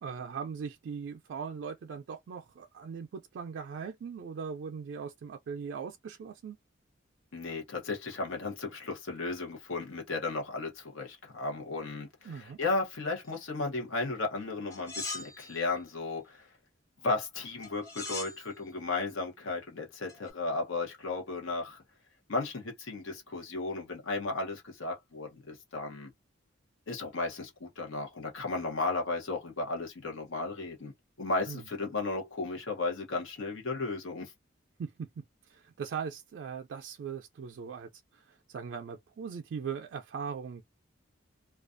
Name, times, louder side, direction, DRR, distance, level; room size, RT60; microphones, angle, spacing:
voice 1, 0.0-6.6 12.2-12.6 31.5-31.6 34.8-40.6, right 6 dB, 65° right, 0.3 m, -40 dB
voice 2, 7.3-16.5 17.0-21.8 22.3-26.1 26.9-34.3, left 3 dB, 85° left, 0.9 m, -35 dB
sound 1, 14.7-15.7 17.6-18.4 20.1-20.3, left 3 dB, 15° left, 0.7 m, -40 dB
2.4 x 2.2 x 2.4 m
head